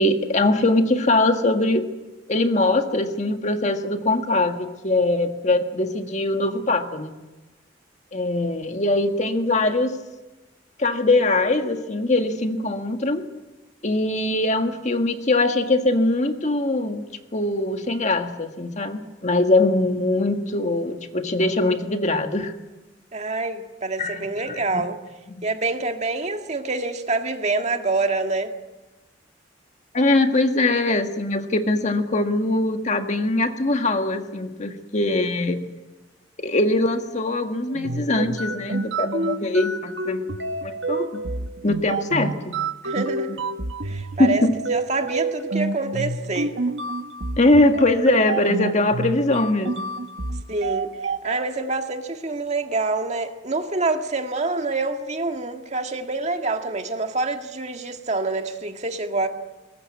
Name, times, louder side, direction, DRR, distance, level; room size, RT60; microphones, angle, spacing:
voice 1, 0.0-1.8 2.3-7.2 8.1-10.0 10.8-13.3 13.8-17.0 17.3-22.5 24.0-24.2 24.5-24.8 25.4-25.5 29.9-35.7 36.4-40.3 40.6-41.1 41.6-42.5 44.2-44.6 47.4-49.9, left 2 dB, 40° left, 1.7 m, -22 dB
voice 2, 23.1-25.0 25.4-28.5 42.8-43.4 43.8-44.4 44.7-46.6 50.5-59.3, right 3 dB, 40° right, 1.9 m, -26 dB
sound 1, 37.7-51.4, right 2 dB, 75° right, 1.5 m, -28 dB
22.5 x 20.0 x 9.5 m
head